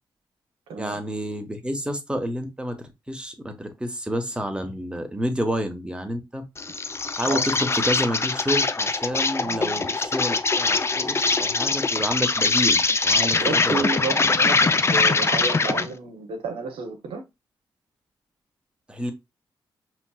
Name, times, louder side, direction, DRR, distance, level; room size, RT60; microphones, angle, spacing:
voice 1, 0.8-6.4 7.2-13.8 18.9-19.1, equal, 10° right, 1.1 m, -29 dB
Insect, 6.6-15.9, left 4 dB, 30° left, 0.4 m, -22 dB
voice 2, 9.4-9.7 13.2-17.2, right 4 dB, 85° right, 0.8 m, -31 dB
5.2 x 3.0 x 2.3 m
cardioid pair, 60°, 9 cm